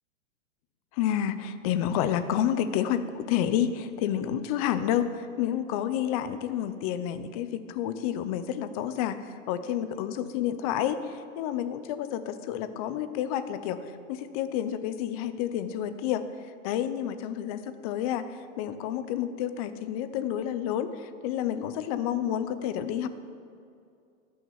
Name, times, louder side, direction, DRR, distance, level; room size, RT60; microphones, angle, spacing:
voice 1, 0.9-16.2 16.6-23.1, left 10 dB, 30° left, 11 dB, 0.5 m, -30 dB
12.5 x 6.4 x 8.1 m, 2.4 s
hypercardioid pair, 145°, 41 cm